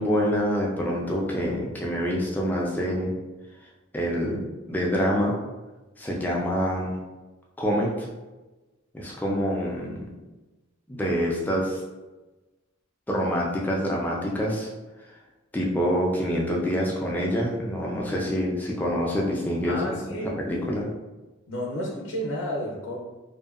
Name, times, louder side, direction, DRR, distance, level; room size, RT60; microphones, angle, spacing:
voice 1, 0.0-3.1 3.9-4.4 4.7-5.3 6.0-7.0 7.6-8.1 8.9-10.0 10.9-11.8 13.1-14.7 15.5-20.0 20.4-20.9, equal, 10° left, -3 dB, 0.3 m, -26 dB
voice 2, 19.7-20.4 21.5-23.0, equal, 80° left, -3 dB, 0.5 m, -31 dB
2.6 x 2.2 x 2.3 m, 1.1 s
head